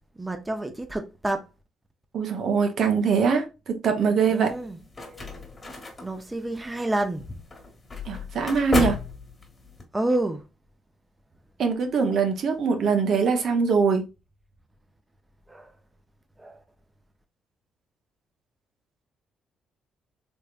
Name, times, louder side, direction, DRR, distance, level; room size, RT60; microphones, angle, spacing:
voice 1, 0.1-1.5 4.3-4.8 6.0-7.3 9.9-10.4 13.1-13.7 15.5-15.7 16.4-16.6, right 1 dB, 15° right, 0.6 m, -29 dB
voice 2, 2.1-4.5 8.1-9.0 11.6-14.1, right 5 dB, 65° right, 0.7 m, -23 dB
sound 1, 4.5-9.8, left 2 dB, 25° left, 1.3 m, -33 dB
3.5 x 3.2 x 2.4 m
cardioid pair, 90°, 0 cm